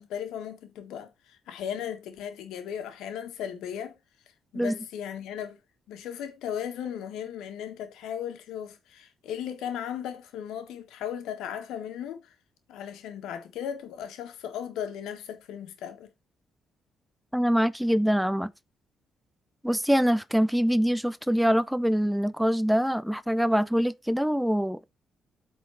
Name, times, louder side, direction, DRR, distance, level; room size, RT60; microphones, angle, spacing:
voice 1, 0.0-4.0 4.5-5.6 5.9-12.3 12.7-16.1, left 9 dB, 85° left, 1.6 m, -36 dB
voice 2, 17.3-18.5 19.6-24.9, equal, ahead, 0.4 m, -24 dB
8.2 x 4.1 x 4.4 m
cardioid pair, 90°, 0 cm